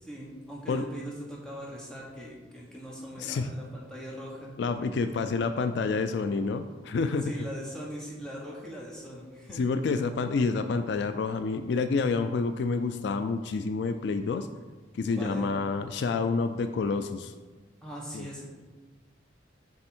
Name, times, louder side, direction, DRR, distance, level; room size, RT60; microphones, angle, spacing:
voice 1, 0.0-4.5 7.2-9.6 15.1-15.6 17.8-18.4, equal, 5° left, -4 dB, 1.2 m, -40 dB
voice 2, 3.2-3.5 4.6-7.3 9.5-14.5 14.9-17.3 18.1-18.3, left 4 dB, 65° left, 9 dB, 0.3 m, -28 dB
7.6 x 3.5 x 4.4 m, 1.3 s
head